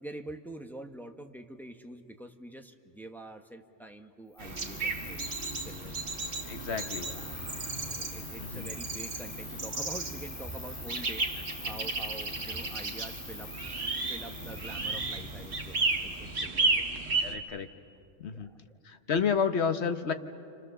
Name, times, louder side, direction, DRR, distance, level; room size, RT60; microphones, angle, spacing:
voice 1, 0.0-6.1 6.7-7.4 8.0-13.5 14.1-16.8 18.3-18.5, right 1 dB, ahead, 4 dB, 1.1 m, -46 dB
Cricket, 4.3-16.3, left 3 dB, 30° left, 1.4 m, -45 dB
sound 1, 4.4-17.3, right 3 dB, 60° right, 1.9 m, -34 dB
voice 2, 6.5-7.1 8.4-8.7 17.2-17.7 18.2-18.5 18.8-20.1, left 6 dB, 65° left, 9 dB, 1.3 m, -30 dB
30.0 x 26.0 x 6.9 m, 2.7 s
omnidirectional pair, 1.2 m